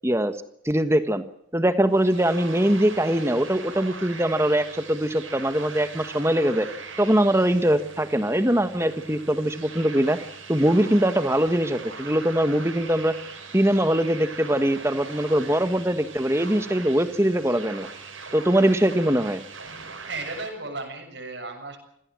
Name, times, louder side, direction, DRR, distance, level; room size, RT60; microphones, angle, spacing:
voice 1, 0.0-0.3 0.6-1.2 1.5-6.7 7.0-10.2 10.5-13.1 13.5-17.9 18.3-19.4, right 1 dB, 15° right, 10 dB, 1.4 m, -22 dB
sound 1, 1.9-20.5, right 4 dB, 85° right, 6.3 m, -41 dB
voice 2, 19.9-21.8, right 3 dB, 60° right, 3 dB, 7.1 m, -35 dB
26.5 x 17.5 x 7.6 m, 0.74 s
head